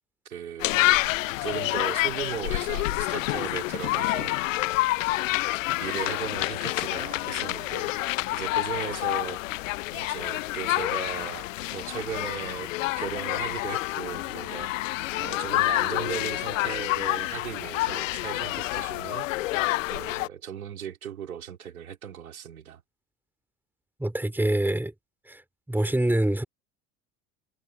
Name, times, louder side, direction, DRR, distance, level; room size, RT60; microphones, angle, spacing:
voice 1, 0.3-1.0 1.4-4.3 5.8-9.4 9.9-19.3 19.9-22.8, right 8 dB, 75° right, 3.5 m, -37 dB
sound 1, 0.6-20.3, left 19 dB, 65° left, 0.9 m, -28 dB
voice 2, 24.0-24.9 25.3-25.4 25.7-26.4, right 1 dB, 5° right, 4.7 m, -25 dB
figure-of-eight pair, 70°, 43 cm